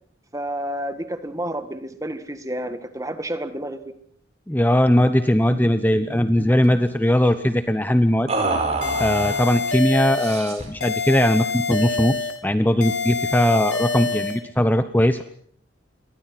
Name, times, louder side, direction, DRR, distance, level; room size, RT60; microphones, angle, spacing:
voice 1, 0.3-3.9, right 1 dB, 20° right, 9 dB, 1.9 m, -30 dB
voice 2, 4.5-8.3 9.0-15.2, left 1 dB, 10° left, 9 dB, 0.9 m, -19 dB
sound 1, 4.9-5.1 5.4-5.6 5.9-6.7 8.3-9.5 10.2-10.8, right 3 dB, 35° right, 5.2 m, -27 dB
sound 2, 8.8-10.4 10.8-12.4 12.8-14.4, left 5 dB, 80° left, 3.2 m, -26 dB
29.5 x 23.0 x 6.1 m, 0.63 s
head